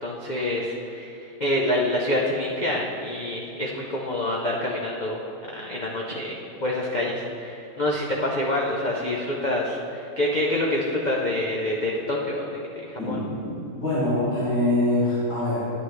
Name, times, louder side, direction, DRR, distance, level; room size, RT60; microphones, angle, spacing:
voice 1, 0.0-5.2 5.5-13.2, left 1 dB, 65° left, -4 dB, 0.4 m, -27 dB
voice 2, 13.0-13.4 13.7-15.6, left 1 dB, 85° left, -10 dB, 2.7 m, -24 dB
9.9 x 8.7 x 3.2 m, 2.7 s
omnidirectional pair, 1.9 m